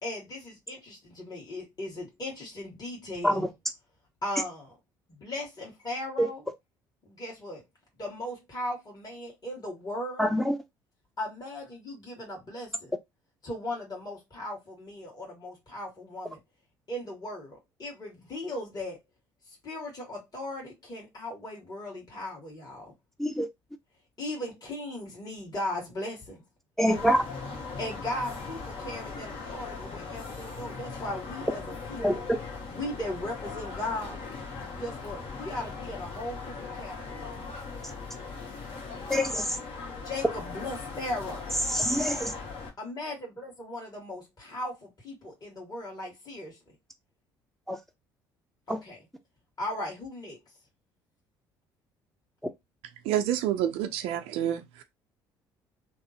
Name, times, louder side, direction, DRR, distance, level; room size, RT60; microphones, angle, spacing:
voice 1, 0.0-3.5 4.2-4.8 5.1-6.5 7.0-7.6 8.0-10.3 11.2-12.9 13.4-16.4 16.9-19.0 19.6-22.9 24.2-26.4 27.8-32.3 32.7-34.2 34.7-37.5 40.0-41.5 42.8-46.7 48.7-49.1 49.6-50.4, left 1 dB, 35° left, 1.6 m, -37 dB
voice 2, 10.2-10.5 23.2-23.5 26.8-27.2 32.0-32.2 39.1-39.4 41.8-42.3 47.7-47.8, equal, 5° left, 0.6 m, -24 dB
sound 1, 26.9-42.7, left 4 dB, 55° left, 1.2 m, -39 dB
voice 3, 53.0-54.8, right 11 dB, 70° right, 0.5 m, -28 dB
2.9 x 2.0 x 2.7 m
hypercardioid pair, 60°, 11 cm